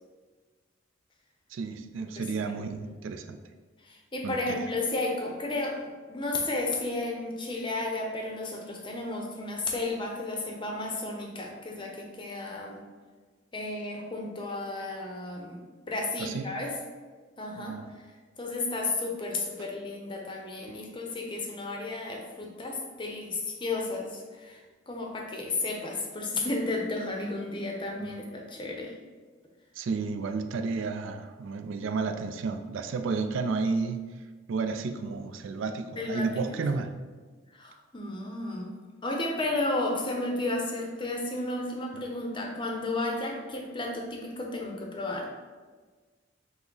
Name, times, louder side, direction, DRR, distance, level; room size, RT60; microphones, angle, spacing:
voice 1, 1.5-3.4 4.2-4.6 16.2-16.5 17.6-17.9 20.7-20.8 28.0-28.1 29.8-34.0 34.5-36.9, right 4 dB, 75° right, 8 dB, 0.3 m, -32 dB
voice 2, 3.8-12.8 13.5-15.6 15.9-16.8 17.4-17.8 18.4-28.9 36.0-36.6 37.5-38.7 39.0-45.3, left 2 dB, 25° left, 1 dB, 0.6 m, -33 dB
5.8 x 2.0 x 3.8 m, 1.4 s
head